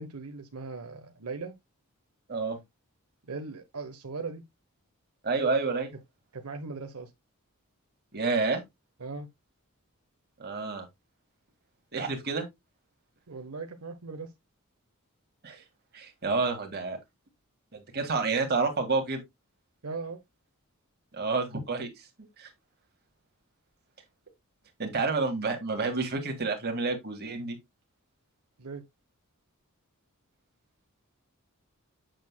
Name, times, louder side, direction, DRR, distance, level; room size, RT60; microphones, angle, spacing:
voice 1, 0.0-1.5 3.3-4.4 6.3-7.1 9.0-9.3 13.3-14.3 19.8-20.2 28.6-28.8, right 4 dB, 90° right, 0.9 m, -38 dB
voice 2, 5.2-5.9 8.1-8.6 10.4-10.9 11.9-12.5 15.4-15.6 15.9-17.0 17.7-19.2 21.1-21.9 22.4-22.5 24.8-27.6, right 4 dB, 50° right, 1.9 m, -29 dB
7.8 x 6.6 x 2.2 m
head